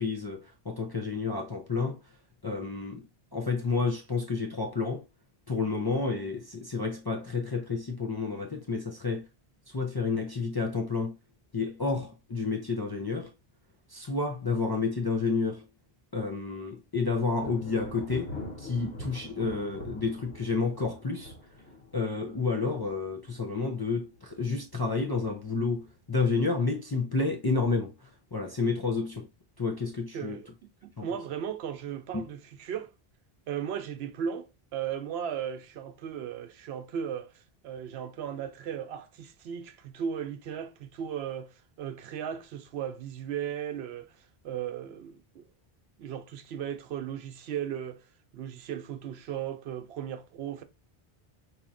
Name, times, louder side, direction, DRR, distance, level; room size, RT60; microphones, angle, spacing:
voice 1, 0.0-2.0 2.4-3.0 3.3-5.0 5.5-9.2 9.7-11.1 11.5-13.3 13.9-15.7 16.1-21.3 21.9-29.3 29.6-30.4 31.0-31.1 32.1-32.2, left 4 dB, 40° left, 0.3 m, -30 dB
Thunder, 17.4-23.8 24.1-24.7 25.2-26.0, left 1 dB, 70° left, 1.3 m, -44 dB
voice 2, 30.1-30.5 30.8-32.9 33.5-44.1 44.4-45.4 46.0-48.1 48.3-50.6, right 8 dB, 90° right, 0.9 m, -36 dB
4.2 x 2.8 x 2.4 m
omnidirectional pair, 1.0 m